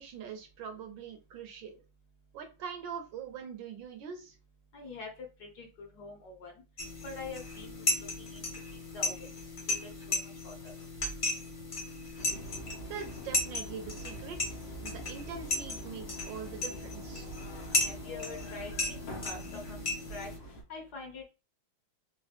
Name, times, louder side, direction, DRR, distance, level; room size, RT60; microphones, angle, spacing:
voice 1, 0.0-1.7 2.3-4.4 12.9-17.3, right 7 dB, 75° right, 5 dB, 1.3 m, -43 dB
voice 2, 4.7-5.1 5.4-6.5 7.0-8.4 8.7-9.3 9.7-10.2 10.4-10.7 17.4-20.3 20.7-21.2, left 3 dB, 60° left, 1 dB, 1.2 m, -45 dB
sound 1, 6.8-20.4, left 2 dB, 40° left, 0.7 m, -36 dB
sound 2, 12.2-20.6, right 1 dB, 85° left, 2.0 m, -45 dB
4.2 x 2.4 x 2.5 m, 0.31 s
omnidirectional pair, 2.2 m